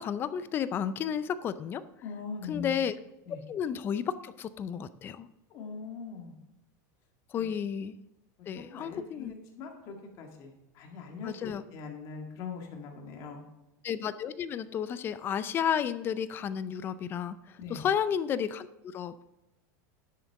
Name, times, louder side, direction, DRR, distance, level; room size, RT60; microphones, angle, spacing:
voice 1, 0.0-1.8 2.4-3.0 3.5-5.3 7.3-7.9 8.5-9.4 11.2-11.6 13.8-19.3, left 8 dB, 25° left, 15 dB, 0.4 m, -32 dB
voice 2, 2.0-2.7 3.3-3.4 5.5-6.3 7.3-7.5 8.6-13.4 17.6-17.8, left 5 dB, 40° left, 2 dB, 1.9 m, -42 dB
10.0 x 8.2 x 3.7 m, 0.95 s
supercardioid pair, 160°, 9 cm